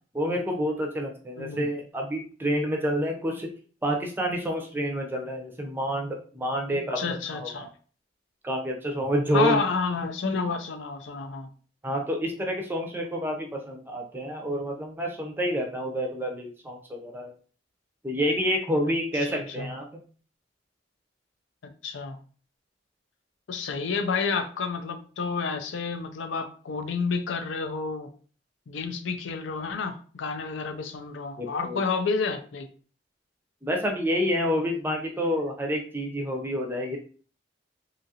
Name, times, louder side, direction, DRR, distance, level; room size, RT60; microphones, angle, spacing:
voice 1, 0.1-3.5 3.8-7.7 8.4-9.6 11.8-17.3 18.0-20.0 31.4-31.8 33.6-37.0, equal, 10° right, 1 dB, 0.5 m, -28 dB
voice 2, 1.4-1.7 6.7-7.7 9.3-11.5 19.2-19.7 21.8-22.2 23.5-28.1 28.7-32.7, left 4 dB, 85° left, 6 dB, 0.5 m, -30 dB
2.8 x 2.4 x 2.7 m, 0.41 s
head